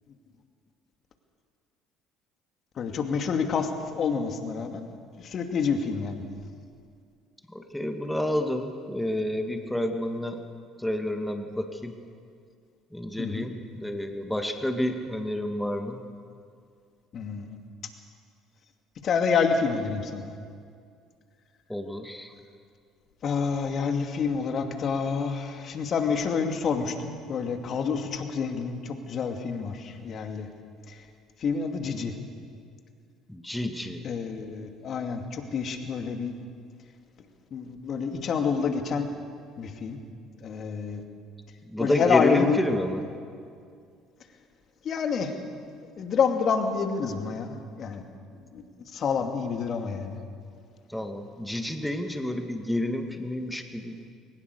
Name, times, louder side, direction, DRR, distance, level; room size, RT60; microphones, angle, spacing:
voice 1, 2.8-4.9 5.2-6.2 13.2-13.5 17.1-17.6 19.0-20.3 23.2-30.5 30.9-31.1 31.4-32.2 34.0-36.3 37.5-39.1 39.6-40.0 40.4-41.0 41.8-42.6 44.8-45.4 46.0-48.0 48.3-50.2, left 5 dB, 50° left, 5 dB, 2.4 m, -28 dB
voice 2, 7.5-10.4 10.8-11.9 12.9-16.0 21.7-22.3 33.3-34.0 41.6-43.0 50.9-54.0, left 1 dB, 5° left, 5 dB, 2.4 m, -30 dB
22.0 x 19.5 x 6.8 m, 2.2 s
hypercardioid pair, 55°, 0 cm